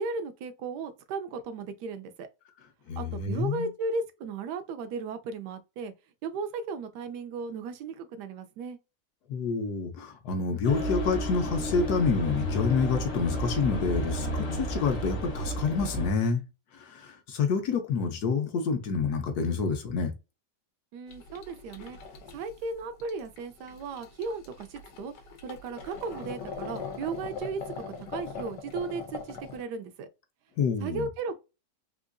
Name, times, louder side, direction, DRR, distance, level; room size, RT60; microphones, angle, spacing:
voice 1, 0.0-2.3 3.0-5.9 6.2-8.8 20.9-22.0 22.3-25.1 25.4-27.8 28.1-30.1 30.8-31.4, right 4 dB, 80° right, 1.2 m, -35 dB
voice 2, 2.9-3.7 9.3-16.4 16.7-20.1 30.6-31.1, left 5 dB, 70° left, 1.2 m, -28 dB
sound 1, 10.6-16.1, right 1 dB, 45° left, 1.0 m, -32 dB
sound 2, 21.1-29.6, left 5 dB, 85° left, 1.4 m, -41 dB
3.8 x 2.5 x 2.5 m
omnidirectional pair, 1.8 m